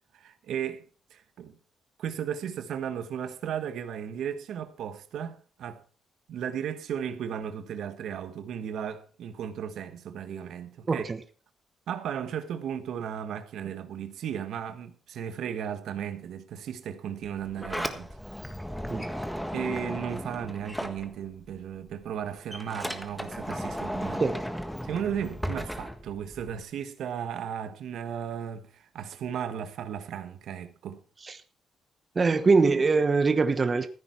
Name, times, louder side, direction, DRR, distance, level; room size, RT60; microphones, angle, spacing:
voice 1, 0.1-0.8 1.1-1.6 2.0-5.8 6.3-11.1 11.9-18.1 19.5-24.2 24.8-31.0, right 8 dB, 80° right, 1.3 m, -35 dB
Sliding door, 17.2-21.6 21.9-26.6, equal, 5° left, 1.5 m, -35 dB
voice 2, 32.1-33.9, right 4 dB, 35° right, 1.1 m, -23 dB
15.0 x 9.2 x 4.5 m
cardioid pair, 95°, 0 cm